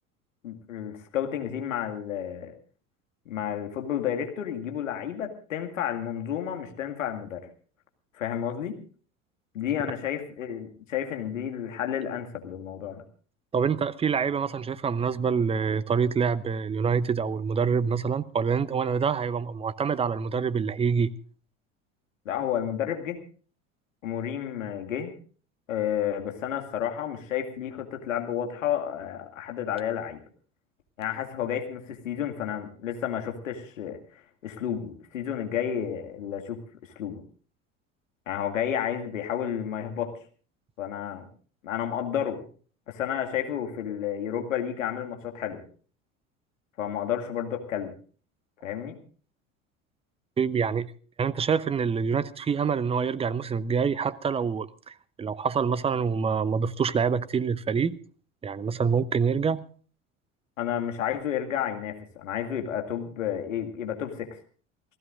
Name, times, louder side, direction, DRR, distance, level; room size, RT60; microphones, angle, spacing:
voice 1, 0.4-2.5 3.3-7.5 8.1-8.8 9.5-13.0 22.3-23.2 24.0-25.1 25.7-30.2 31.0-36.6 37.0-37.2 38.3-40.1 40.8-41.2 41.6-42.4 42.9-45.6 46.8-47.9 48.6-48.9 60.6-64.4, left 9 dB, 70° left, 2.2 m, -31 dB
voice 2, 13.5-21.1 50.4-50.9 51.2-58.0 58.4-59.6, right 6 dB, 15° right, 0.7 m, -26 dB
28.0 x 15.5 x 2.5 m
figure-of-eight pair, 70°, 40 cm